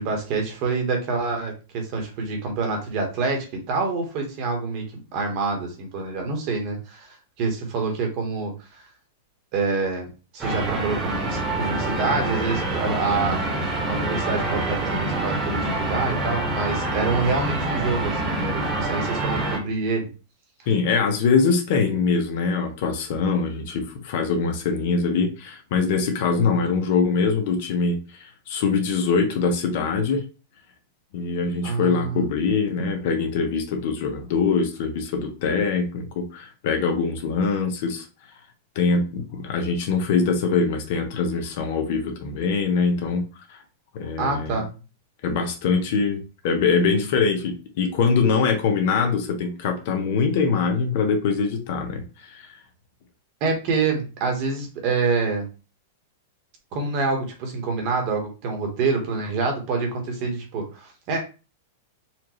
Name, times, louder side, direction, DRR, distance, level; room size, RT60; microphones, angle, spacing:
voice 1, 0.0-4.9 5.1-8.9 9.5-10.1 10.3-13.5 13.9-20.1 31.6-32.2 44.2-44.7 53.4-55.5 56.7-61.2, right 4 dB, 45° right, 2 dB, 1.3 m, -26 dB
sound 1, 10.4-19.6, right 2 dB, 15° right, 1.3 m, -26 dB
voice 2, 20.7-30.2 31.1-38.0 38.7-43.6 43.9-44.5 45.2-52.5, left 5 dB, 55° left, 5 dB, 0.9 m, -23 dB
4.4 x 2.5 x 3.1 m, 0.32 s
supercardioid pair, 150°, 0 cm